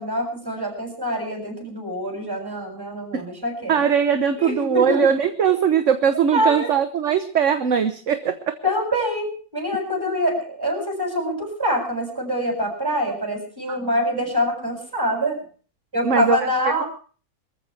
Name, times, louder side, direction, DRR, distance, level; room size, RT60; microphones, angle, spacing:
voice 1, 0.0-3.8 4.4-5.1 6.3-6.7 8.6-15.4 15.9-16.9, equal, 15° right, 2 dB, 7.3 m, -25 dB
voice 2, 3.7-8.6 13.7-13.8 16.0-16.4, right 7 dB, 55° right, 9 dB, 1.2 m, -20 dB
24.5 x 14.5 x 3.3 m, 0.41 s
omnidirectional pair, 1.6 m